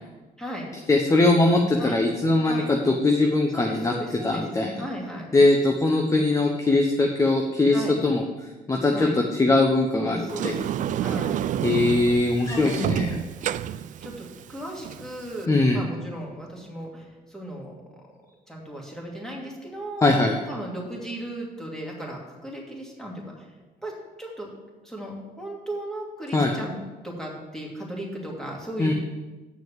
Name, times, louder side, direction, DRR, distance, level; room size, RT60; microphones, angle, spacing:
voice 1, 0.4-0.7 1.8-1.9 2.4-2.6 3.5-4.4 4.8-5.3 7.7-7.9 8.9-9.2 9.9-10.6 11.0-11.3 12.4-13.3 14.0-17.7 18.5-20.2 20.5-23.5 23.8-23.9 24.2-24.5 24.8-26.8 27.0-28.9, right 1 dB, 5° left, -2 dB, 2.6 m, -36 dB
voice 2, 0.9-3.9 4.2-4.8 5.3-7.8 8.0-8.2 8.7-10.2 10.4-10.5 11.6-13.1 15.5-15.8 20.0-20.4 26.3-26.5 28.8-28.9, left 2 dB, 20° left, 2 dB, 0.9 m, -21 dB
Sliding door, 10.3-15.4, right 10 dB, 50° right, 0.4 m, -29 dB
7.4 x 6.3 x 7.4 m, 1.2 s
cardioid pair, 110°, 17 cm